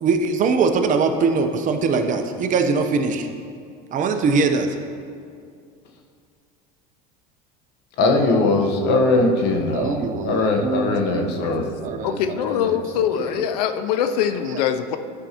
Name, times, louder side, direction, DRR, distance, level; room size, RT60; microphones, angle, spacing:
voice 1, 0.0-3.3 3.9-4.7 9.7-13.4 14.0-14.2 14.5-14.6, right 4 dB, 40° right, 6 dB, 0.7 m, -23 dB
voice 2, 8.0-11.8, left 2 dB, 60° left, 2 dB, 1.1 m, -20 dB
voice 3, 12.0-15.0, left 9 dB, 90° left, 9 dB, 0.5 m, -23 dB
11.5 x 5.4 x 2.9 m, 2.3 s
supercardioid pair, 100°, 20 cm